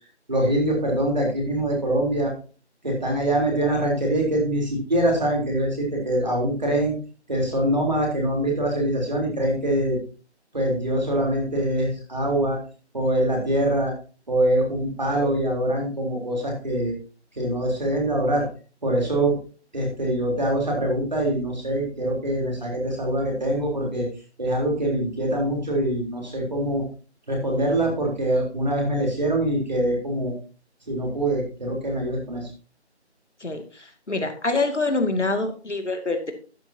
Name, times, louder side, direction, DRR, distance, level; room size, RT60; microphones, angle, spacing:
voice 1, 0.3-2.3 2.8-6.9 7.3-10.0 10.5-12.6 12.9-13.9 14.3-16.9 17.4-18.5 18.8-19.4 19.7-24.1 24.4-26.8 27.3-30.3 30.9-32.5, right 1 dB, 40° right, -1 dB, 3.7 m, -24 dB
voice 2, 33.4-36.3, left 3 dB, 85° left, 6 dB, 2.4 m, -26 dB
12.0 x 10.0 x 2.8 m, 0.37 s
figure-of-eight pair, 175°, 34 cm